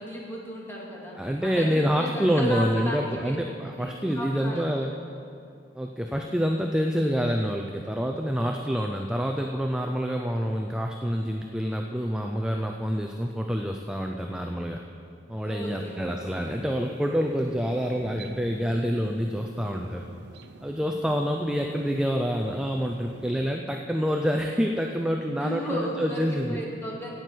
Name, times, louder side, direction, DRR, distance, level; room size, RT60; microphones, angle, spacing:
voice 1, 0.0-3.4 3.7-4.9 15.4-16.5 25.4-27.1, equal, 15° left, -4 dB, 2.1 m, -35 dB
voice 2, 1.2-4.9 5.7-14.8 15.3-20.1 20.6-26.6, equal, 5° right, 3 dB, 0.4 m, -27 dB
sound 1, 15.6-23.6, right 2 dB, 65° right, 0.6 m, -46 dB
17.0 x 7.7 x 4.5 m, 2.5 s
head